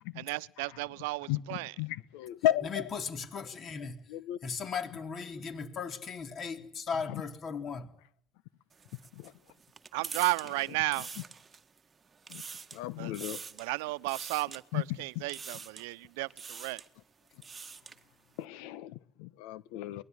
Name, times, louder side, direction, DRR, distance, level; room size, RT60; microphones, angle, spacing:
voice 1, 0.2-1.7 9.9-11.1 13.0-13.1 13.6-16.8, right 24 dB, 90° right, 1.0 m, -34 dB
voice 2, 1.3-2.9 4.1-4.4 7.1-7.2 9.1-9.3 11.2-11.3 12.3-12.4 12.7-13.4 14.7-15.2 18.4-20.0, left 13 dB, 80° left, 1.4 m, -34 dB
voice 3, 2.6-4.0 4.4-7.9, left 5 dB, 35° left, 3.8 m, -37 dB
sound 1, 8.7-11.8 12.1-12.8 13.1-13.7 14.1-14.6 15.3-15.9 16.3-16.9 17.3-18.0, right 5 dB, 20° right, 1.6 m, -44 dB
23.5 x 20.5 x 9.8 m
cardioid pair, 135°, 0 cm